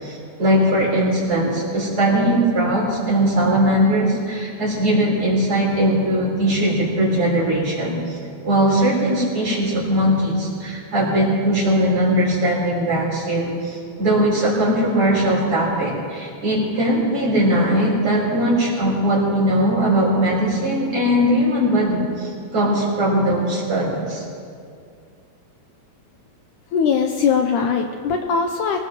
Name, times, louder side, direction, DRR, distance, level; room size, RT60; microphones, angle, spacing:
voice 1, 0.0-8.2 8.4-24.2, right 1 dB, 40° right, -5 dB, 4.7 m, -20 dB
voice 2, 26.7-28.8, left 6 dB, 75° left, 4 dB, 2.0 m, -20 dB
24.0 x 18.5 x 3.0 m, 2.3 s
omnidirectional pair, 4.0 m